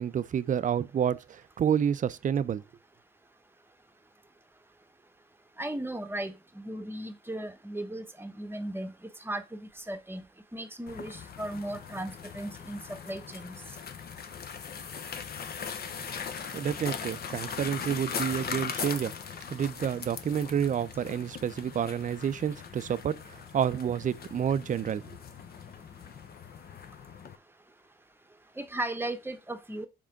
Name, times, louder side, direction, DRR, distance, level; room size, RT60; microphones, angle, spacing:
voice 1, 0.0-2.6 16.5-19.1 19.5-25.2, right 8 dB, 40° right, 0.5 m, -29 dB
voice 2, 5.6-10.2 10.5-13.6 28.6-29.9, right 1 dB, 10° right, 0.9 m, -37 dB
sound 1, 10.9-27.4, left 7 dB, 50° left, 0.9 m, -40 dB
4.9 x 3.7 x 5.7 m
cardioid pair, 90°, 20 cm